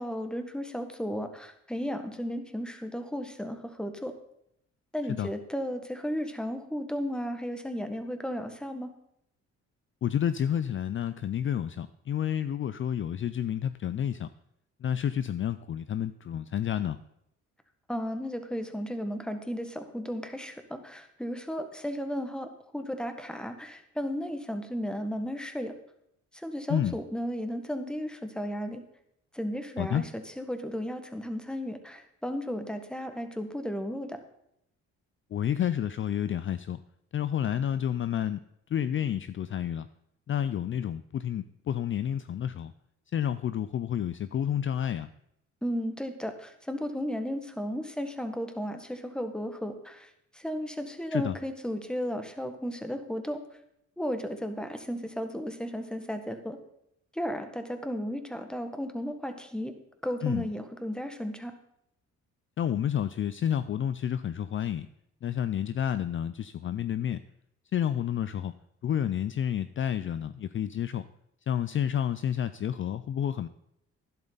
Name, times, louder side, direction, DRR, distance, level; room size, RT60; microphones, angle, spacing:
voice 1, 0.0-4.1 4.9-8.9 17.9-22.5 22.7-25.7 26.3-28.8 29.3-34.2 45.6-53.4 54.0-56.6 57.1-59.7 60.0-61.5, equal, 5° left, 7 dB, 1.5 m, -34 dB
voice 2, 10.0-14.3 14.8-17.0 26.7-27.0 29.8-30.1 35.3-36.8 37.1-38.4 38.7-39.9 40.3-42.7 43.1-45.1 51.1-51.3 60.2-60.5 62.6-64.9 65.2-67.2 67.7-68.5 68.8-71.1 71.5-73.5, left 9 dB, 45° left, 13 dB, 0.5 m, -30 dB
12.0 x 11.0 x 4.0 m, 0.76 s
cardioid pair, 90°, 30 cm